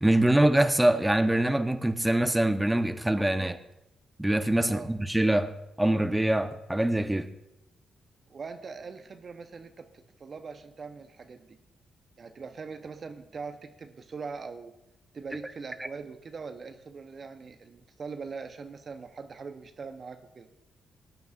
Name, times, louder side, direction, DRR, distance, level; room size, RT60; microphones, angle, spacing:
voice 1, 0.0-3.6 4.2-7.3, right 1 dB, 10° right, 0.9 m, -24 dB
voice 2, 8.3-11.6 12.2-14.7 15.1-20.5, right 5 dB, 50° right, 0.8 m, -42 dB
19.0 x 9.3 x 2.5 m
hypercardioid pair, 45°, 0 cm